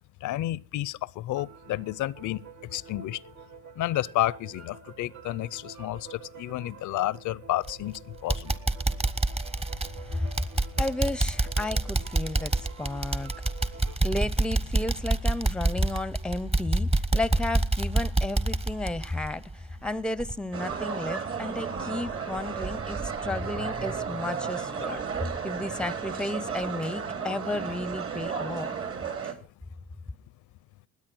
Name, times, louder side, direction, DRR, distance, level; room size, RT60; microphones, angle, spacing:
voice 1, 0.2-2.4 2.7-3.2 3.8-8.6, left 15 dB, 75° left, 0.6 m, -31 dB
sound 1, 1.4-14.0, right 7 dB, 70° right, 1.6 m, -48 dB
sound 2, 7.6-8.0 8.3-19.9 20.2-20.3 20.8-20.9, right 2 dB, 20° right, 1.1 m, -27 dB
voice 2, 10.1-10.5 10.8-13.3 14.0-25.0 25.4-28.8 29.2-29.3, left 2 dB, 5° left, 0.6 m, -32 dB
sound 3, 20.5-29.3, right 6 dB, 50° right, 2.9 m, -33 dB
20.5 x 8.5 x 6.1 m
cardioid pair, 90°, 30 cm